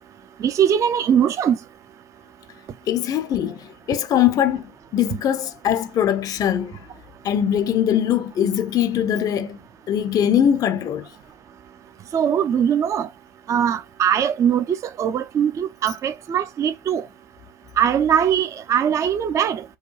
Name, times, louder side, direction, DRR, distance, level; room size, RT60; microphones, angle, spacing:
voice 1, 0.4-1.6 12.1-13.1 13.5-17.0 17.8-19.6, right 8 dB, 30° right, 0.4 m, -21 dB
voice 2, 2.9-6.9 7.2-9.6 9.9-11.1, left 10 dB, 35° left, 0.5 m, -21 dB
4.6 x 2.2 x 3.0 m
hypercardioid pair, 80°, 10 cm